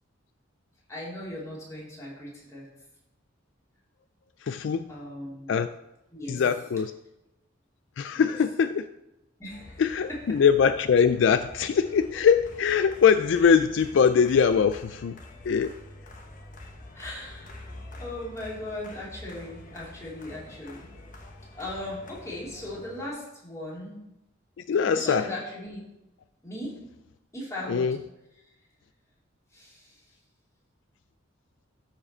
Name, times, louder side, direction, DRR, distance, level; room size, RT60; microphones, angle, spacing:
voice 1, 0.9-2.7 4.9-5.5 6.1-6.4 8.1-8.3 9.4-9.8 16.9-17.7 18.0-20.9 21.5-23.9 24.9-25.8 26.4-26.7 27.3-27.9 29.5-30.0, left 1 dB, 15° left, -6 dB, 3.0 m, -38 dB
voice 2, 4.4-4.9 5.5-5.7 6.3-6.9 8.0-8.9 9.8-15.2 15.4-15.7 24.7-25.2 27.7-28.0, left 6 dB, 65° left, 12 dB, 0.3 m, -22 dB
sound 1, 9.5-23.1, left 1 dB, 40° left, 1.2 m, -46 dB
13.0 x 4.9 x 4.3 m, 0.92 s
head